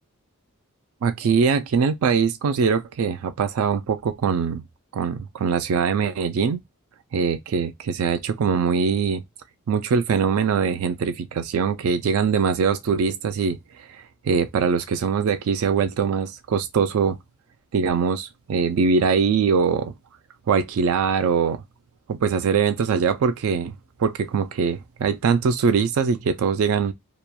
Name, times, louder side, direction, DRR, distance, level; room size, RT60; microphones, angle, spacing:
voice 1, 1.0-4.6 4.9-6.6 7.1-9.2 9.7-17.2 17.7-19.9 20.5-21.6 22.1-23.7 24.0-26.9, right 6 dB, 70° right, 0.3 m, -22 dB
2.8 x 2.1 x 2.2 m
head